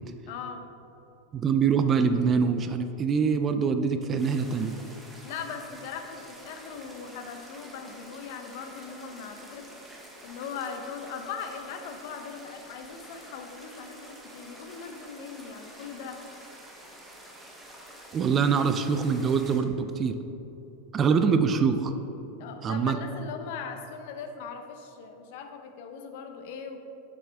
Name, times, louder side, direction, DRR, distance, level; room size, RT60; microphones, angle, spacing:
voice 1, 0.3-0.6 5.2-9.6 10.2-16.2 22.4-26.8, left 6 dB, 60° left, 6 dB, 0.7 m, -39 dB
voice 2, 1.3-4.7 18.1-20.2 20.9-21.9 22.6-23.0, right 6 dB, 25° right, 8 dB, 0.3 m, -24 dB
sound 1, 4.2-19.6, right 1 dB, 5° right, 0.9 m, -48 dB
7.1 x 6.1 x 3.4 m, 3.0 s
supercardioid pair, 145°, 0 cm